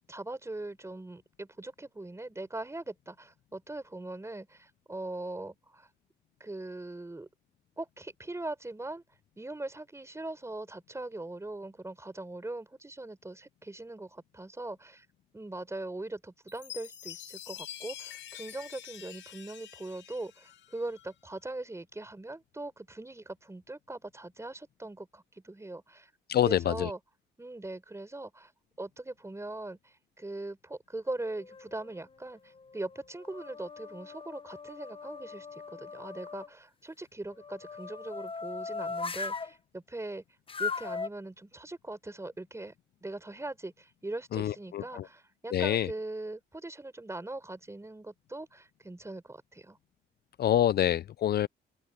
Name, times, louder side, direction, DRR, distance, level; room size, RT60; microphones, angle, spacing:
voice 1, 0.0-5.9 6.4-7.3 7.8-9.0 9.4-15.1 15.3-26.1 26.4-27.0 27.4-28.5 28.8-40.2 40.6-42.7 43.0-49.8, right 2 dB, 15° right, 4.3 m, -41 dB
Chime, 16.5-21.1, left 11 dB, 70° left, 7.4 m, -46 dB
voice 2, 26.3-26.9 44.3-45.0 45.5-45.9 50.4-51.5, left 11 dB, 55° left, 0.4 m, -26 dB
sound 1, 31.1-32.0 32.5-36.5 37.3-39.5 40.5-41.1, left 4 dB, 25° left, 0.9 m, -39 dB
open air
cardioid pair, 90°, 20 cm